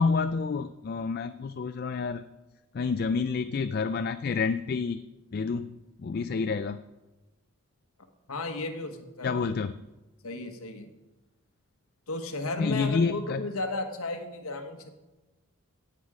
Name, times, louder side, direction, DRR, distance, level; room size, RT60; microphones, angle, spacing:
voice 1, 0.0-2.3 2.7-5.0 5.3-5.7 6.0-6.8 9.2-9.8 12.6-13.5, left 4 dB, 45° left, 10 dB, 0.3 m, -28 dB
voice 2, 8.3-9.5 10.2-10.9 12.1-14.9, left 2 dB, 75° left, 6 dB, 1.3 m, -34 dB
17.0 x 8.1 x 5.0 m, 1.1 s
head